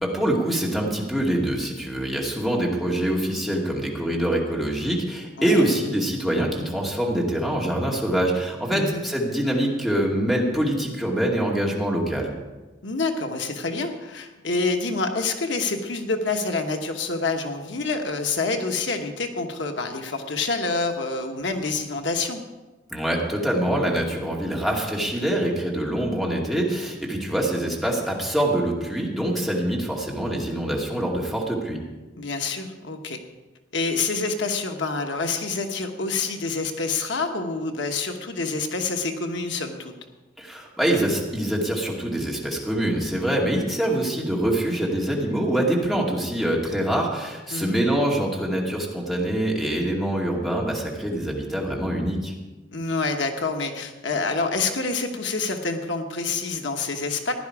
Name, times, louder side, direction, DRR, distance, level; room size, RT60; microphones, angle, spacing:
voice 1, 0.0-12.3 22.9-31.8 40.4-52.3, right 1 dB, ahead, -3 dB, 2.3 m, -24 dB
voice 2, 8.7-9.0 12.8-22.4 32.2-33.2 33.7-39.9 47.5-47.8 52.7-57.3, left 3 dB, 75° left, 5 dB, 1.2 m, -27 dB
16.0 x 11.0 x 4.8 m, 1.2 s
head